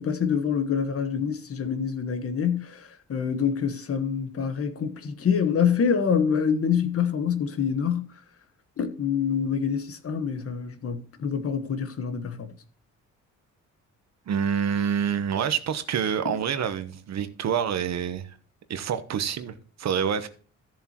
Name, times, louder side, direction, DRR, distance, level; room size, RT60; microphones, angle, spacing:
voice 1, 0.0-8.1 8.8-12.5, left 7 dB, 45° left, 1.3 m, -26 dB
voice 2, 14.3-18.4 18.7-20.3, right 8 dB, 60° right, 1.0 m, -27 dB
14.0 x 7.2 x 3.0 m
cardioid pair, 105°, 31 cm